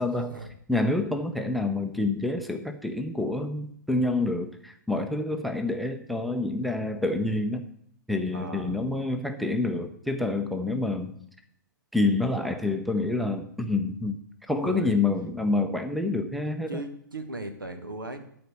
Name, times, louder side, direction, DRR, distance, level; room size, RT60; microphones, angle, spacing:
voice 1, 0.0-0.4 0.7-7.7 8.1-11.2 11.9-14.2 14.5-16.8, left 2 dB, ahead, 8 dB, 0.6 m, -27 dB
voice 2, 8.3-8.8 14.5-15.0 16.7-18.2, right 1 dB, 75° right, 8 dB, 1.6 m, -37 dB
12.0 x 4.3 x 8.3 m, 0.70 s
figure-of-eight pair, 115°, 11 cm